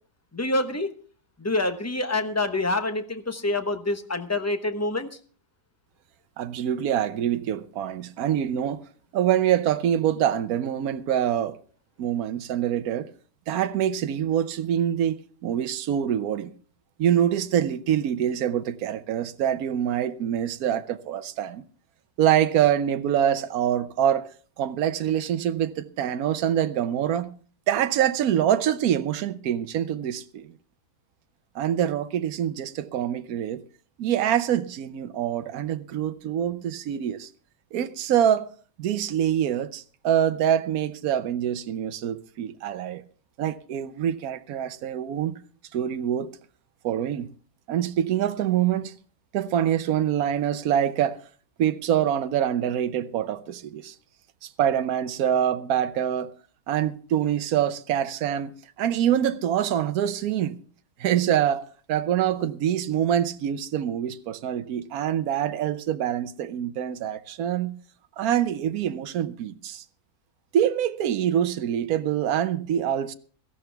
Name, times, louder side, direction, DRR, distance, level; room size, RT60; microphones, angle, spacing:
voice 1, 0.3-0.9 1.4-5.2, left 2 dB, 15° left, 0.8 m, -26 dB
voice 2, 6.4-8.8 9.1-11.6 12.0-13.1 13.5-16.5 17.0-21.6 22.2-24.3 24.6-27.3 27.7-30.5 31.5-33.6 34.0-37.3 37.7-38.5 38.8-43.0 43.4-45.4 45.7-46.3 46.8-47.3 47.7-48.9 49.3-51.2 51.6-53.9 54.4-56.3 56.7-60.6 61.0-67.8 68.2-69.8 70.5-73.1, right 10 dB, 70° right, 1.2 m, -25 dB
17.0 x 13.5 x 3.4 m
omnidirectional pair, 1.6 m